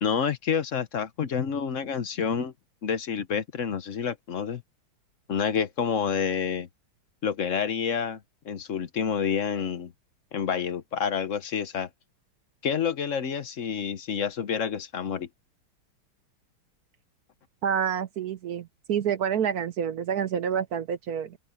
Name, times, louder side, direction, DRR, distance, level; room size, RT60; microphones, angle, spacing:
voice 1, 0.0-2.5 2.8-4.6 5.3-6.7 7.2-8.2 8.4-9.9 10.3-11.9 12.6-15.3, left 7 dB, 50° left, 1.1 m, -28 dB
voice 2, 17.6-21.4, right 8 dB, 60° right, 1.0 m, -28 dB
open air
omnidirectional pair, 2.3 m